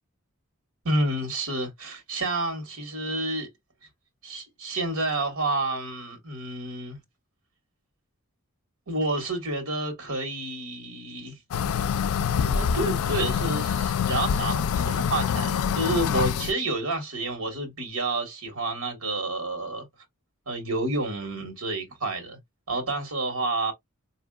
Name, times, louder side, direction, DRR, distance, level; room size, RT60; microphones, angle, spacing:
voice 1, 0.8-3.5 4.2-7.0 8.9-11.4 12.4-19.9 20.5-22.4 22.7-23.7, right 2 dB, 75° right, 1.5 m, -29 dB
sound 1, 11.5-16.5, left 7 dB, 75° left, 0.4 m, -25 dB
4.6 x 2.7 x 2.3 m
head